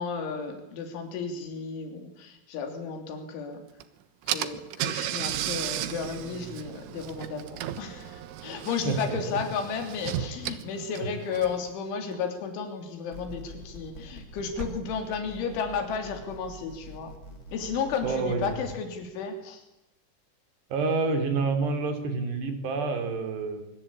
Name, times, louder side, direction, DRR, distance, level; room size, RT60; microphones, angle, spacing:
voice 1, 0.0-3.6 4.3-17.1 17.5-19.6, left 5 dB, 80° left, 5 dB, 5.5 m, -33 dB
Car / Engine, 3.8-3.9 4.3-11.7, right 12 dB, 85° right, 3.8 m, -34 dB
voice 2, 8.8-9.2 18.0-18.5 20.7-23.6, right 4 dB, 65° right, 7 dB, 5.3 m, -28 dB
sound 1, 10.4-11.5 12.0-12.7 13.6-14.1 14.5-15.4, right 3 dB, 30° right, 1.5 m, -45 dB
sound 2, 13.1-18.8, right 1 dB, 20° left, 4.0 m, -45 dB
25.5 x 23.5 x 8.7 m, 0.89 s
omnidirectional pair, 5.4 m